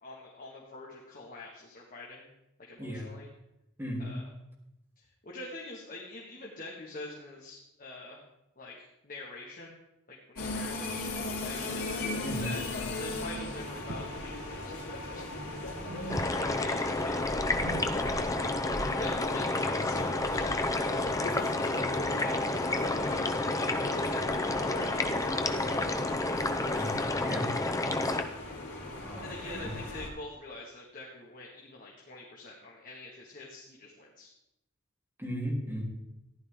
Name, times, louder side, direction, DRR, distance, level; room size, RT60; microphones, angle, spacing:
voice 1, 0.0-2.3 2.7-3.3 4.0-4.2 5.0-8.2 8.6-9.8 10.1-12.0 12.4-12.6 13.0-15.2 16.0-21.1 21.6-25.8 26.9-27.2 29.2-34.3, left 2 dB, 40° left, -3 dB, 1.8 m, -45 dB
voice 2, 3.8-4.2 12.2-12.5 26.7-26.9 27.2-27.5 29.0-29.7 35.2-35.8, equal, 10° right, -4 dB, 3.4 m, -36 dB
sound 1, 10.4-30.1, left 2 dB, 90° left, 3.2 m, -38 dB
sound 2, 13.9-14.3 14.6-15.5 15.7-16.7 17.0-20.7, right 2 dB, 80° right, 1.2 m, -46 dB
sound 3, 16.1-28.2, left 2 dB, 15° left, 0.6 m, -30 dB
14.5 x 11.0 x 3.7 m, 0.85 s
head